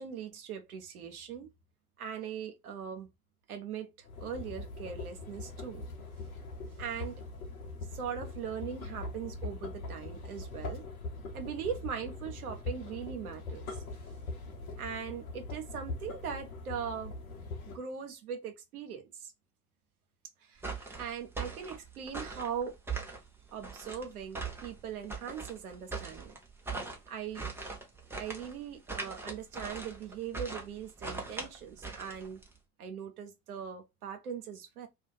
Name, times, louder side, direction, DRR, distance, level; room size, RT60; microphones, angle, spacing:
voice 1, 0.0-1.5 2.0-3.1 3.5-5.9 6.8-7.2 7.9-10.9 11.3-13.8 14.8-17.1 17.7-19.3 20.4-22.8 23.5-26.4 27.1-27.5 28.2-32.4 32.8-34.9, right 7 dB, 70° right, 0.7 m, -40 dB
sound 1, 4.0-17.8, left 3 dB, 65° left, 0.9 m, -42 dB
sound 2, 20.6-32.6, right 4 dB, 5° right, 0.7 m, -41 dB
2.5 x 2.1 x 3.8 m
figure-of-eight pair, 75°, 45 cm